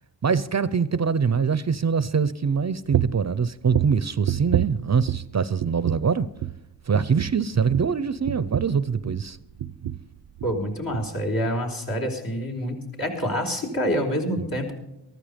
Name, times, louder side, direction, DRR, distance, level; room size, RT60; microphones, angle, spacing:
voice 1, 0.2-6.3 6.9-9.4 14.4-14.5, right 6 dB, 40° right, 0.6 m, -23 dB
sound 1, 2.9-3.3 3.7-5.3 5.6-6.1 6.4-6.6 6.9-9.3 9.6-10.1 10.4-10.6 10.9-11.1, right 11 dB, 80° right, 0.7 m, -28 dB
voice 2, 10.4-14.7, equal, 55° left, 4.2 m, -27 dB
14.0 x 13.5 x 5.1 m
cardioid pair, 55°, 42 cm